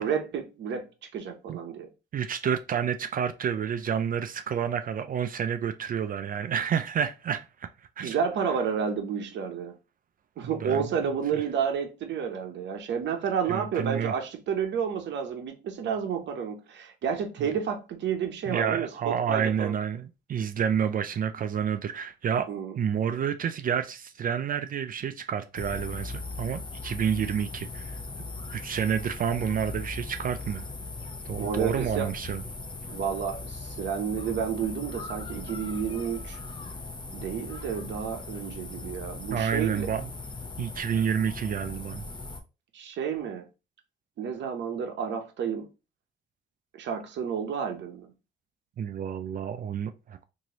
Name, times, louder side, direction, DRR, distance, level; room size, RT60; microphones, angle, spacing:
voice 1, 0.0-1.9 8.0-9.8 10.4-19.7 22.5-22.8 31.4-32.1 32.9-36.4 37.1-39.9 42.7-43.4 44.2-45.7 46.8-48.1, right 7 dB, 65° right, 0.7 m, -30 dB
voice 2, 2.1-7.7 8.0-8.2 10.6-10.9 11.3-11.4 13.5-14.1 18.5-22.5 22.8-28.0 28.5-30.7 31.3-32.4 39.3-40.1 40.6-42.0 48.8-50.2, right 8 dB, 45° right, 0.4 m, -29 dB
sound 1, 25.6-42.4, left 3 dB, 25° left, 0.6 m, -39 dB
3.0 x 2.7 x 2.8 m
cardioid pair, 90°, 20 cm